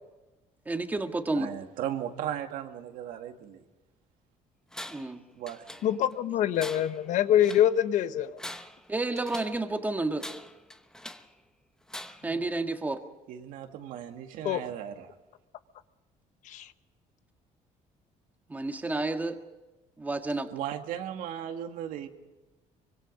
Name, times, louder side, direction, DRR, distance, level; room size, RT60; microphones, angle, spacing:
voice 1, 0.6-1.5 4.9-5.2 8.9-10.3 12.2-13.0 18.5-19.4 20.0-20.5, right 2 dB, 10° right, 1.6 m, -30 dB
voice 2, 1.3-3.6 5.3-5.7 13.3-15.1 20.5-22.1, right 10 dB, 85° right, 2.0 m, -36 dB
Tools, 4.7-5.2 5.5-6.2 6.6-7.7 8.2-9.6 10.2-11.3 11.9-12.4, left 1 dB, 5° left, 0.9 m, -43 dB
voice 3, 5.8-8.4 14.4-14.6 16.5-16.7, left 11 dB, 65° left, 1.1 m, -25 dB
25.0 x 24.5 x 5.3 m
cardioid pair, 150°, 14 cm